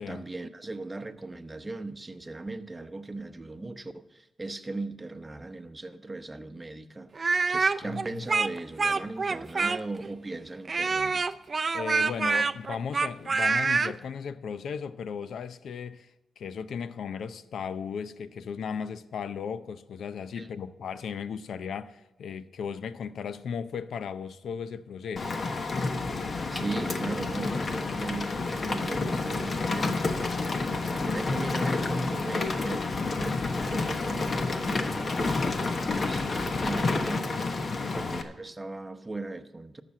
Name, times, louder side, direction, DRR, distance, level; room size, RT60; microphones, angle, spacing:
voice 1, 0.1-11.2 20.4-20.5 26.5-39.8, right 2 dB, 20° right, 0.9 m, -38 dB
Speech, 7.2-10.1 10.7-13.9, right 4 dB, 40° right, 0.4 m, -26 dB
voice 2, 7.7-8.2 11.7-16.1 16.4-25.4 37.7-38.0, left 6 dB, 75° left, 0.6 m, -36 dB
Rain, 25.2-38.2, left 3 dB, 45° left, 1.1 m, -29 dB
13.5 x 6.0 x 7.5 m
cardioid pair, 70°, 0 cm